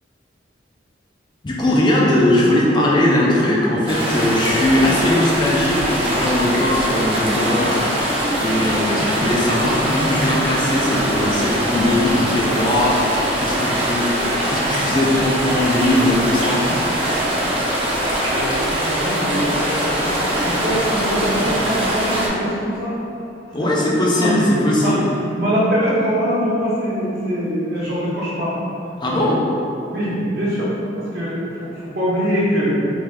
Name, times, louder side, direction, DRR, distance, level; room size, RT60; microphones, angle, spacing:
voice 1, 1.4-16.6 23.5-25.0 29.0-29.4, left 1 dB, 25° left, -4 dB, 0.4 m, -19 dB
sound 1, 3.9-22.3, right 1 dB, 30° right, 0.6 m, -22 dB
voice 2, 18.2-23.0 24.1-24.3 24.8-25.0 25.3-28.6 29.1-29.3 29.9-32.8, equal, 55° right, -8 dB, 1.0 m, -23 dB
3.4 x 2.7 x 3.2 m, 2.7 s
head